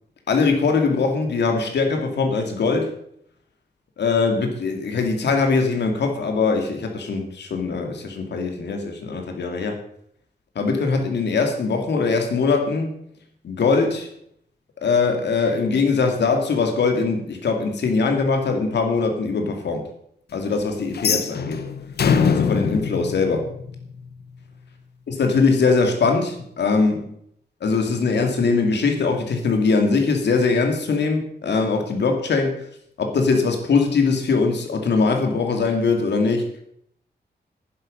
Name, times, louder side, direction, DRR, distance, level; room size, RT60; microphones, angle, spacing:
voice 1, 0.3-2.9 4.0-9.8 10.6-13.0 13.4-14.1 14.8-19.9 20.3-21.6 22.2-23.5 25.1-27.1 27.6-32.5 33.0-36.4, left 4 dB, 85° left, 4 dB, 2.6 m, -21 dB
sound 1, 20.9-24.0, left 6 dB, 70° left, 1.0 m, -23 dB
11.5 x 10.5 x 5.5 m, 0.70 s
wide cardioid pair, 145°, 17 cm